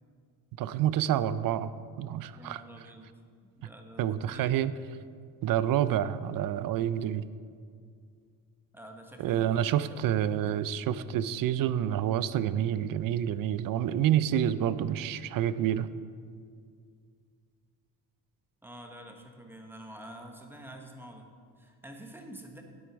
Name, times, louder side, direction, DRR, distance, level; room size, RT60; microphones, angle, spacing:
voice 1, 0.6-1.7 2.0-2.6 4.0-4.7 5.4-7.2 9.2-15.9, right 11 dB, 55° right, 15 dB, 0.5 m, -28 dB
voice 2, 2.3-3.1 3.4-4.5 8.7-10.6 18.6-22.6, right 1 dB, 5° right, 3 dB, 1.0 m, -48 dB
9.4 x 8.0 x 5.2 m, 2.2 s
cardioid pair, 125°, 40 cm